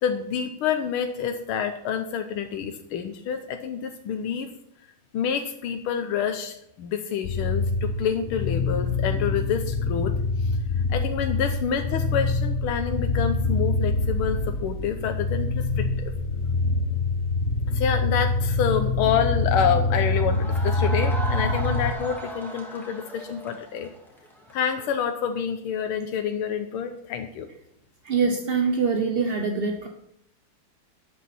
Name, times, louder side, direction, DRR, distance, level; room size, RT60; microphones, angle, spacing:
voice 1, 0.0-4.5 5.1-10.1 10.4-10.5 10.9-16.1 17.7-23.9 24.5-27.5, left 7 dB, 90° left, 6 dB, 1.7 m, -28 dB
sound 1, 7.2-21.9, left 3 dB, 50° left, 0.8 m, -25 dB
sound 2, 20.1-24.9, equal, ahead, 2.3 m, -36 dB
voice 2, 28.0-29.9, right 5 dB, 45° right, 3 dB, 0.7 m, -24 dB
12.5 x 9.0 x 4.2 m, 0.76 s
omnidirectional pair, 2.3 m